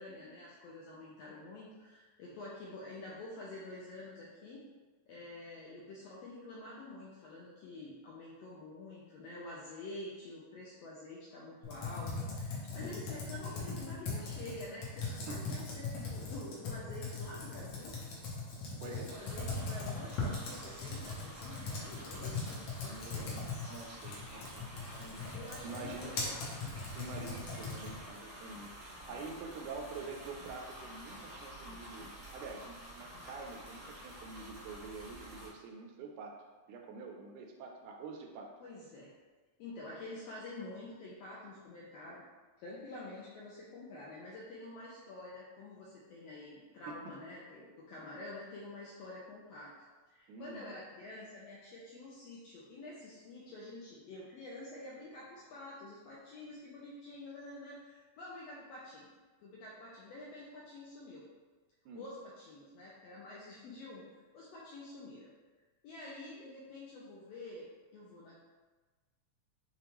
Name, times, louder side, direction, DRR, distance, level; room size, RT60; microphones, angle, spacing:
voice 1, 0.0-4.6 5.1-18.0 18.7-23.4 25.3-26.7 29.6-29.7 38.6-39.1 39.6-42.2 42.6-49.7 50.1-59.1 59.4-61.2 61.9-64.0 64.3-65.3 65.8-68.4, left 2 dB, 80° left, -6 dB, 1.5 m, -48 dB
Computer keyboard, 11.6-28.1, left 3 dB, 65° left, 1.9 m, -40 dB
voice 2, 12.6-13.0 15.3-15.4 18.8-19.1 22.8-23.4 23.7-25.3 25.6-26.1 26.9-36.4 36.7-38.5 46.9-47.0 50.3-50.7 61.9-62.1, right 4 dB, 85° right, 2 dB, 2.0 m, -47 dB
sound 1, 19.1-35.5, equal, 60° right, 1.1 m, -50 dB
6.8 x 2.3 x 3.0 m, 1.3 s
omnidirectional pair, 3.5 m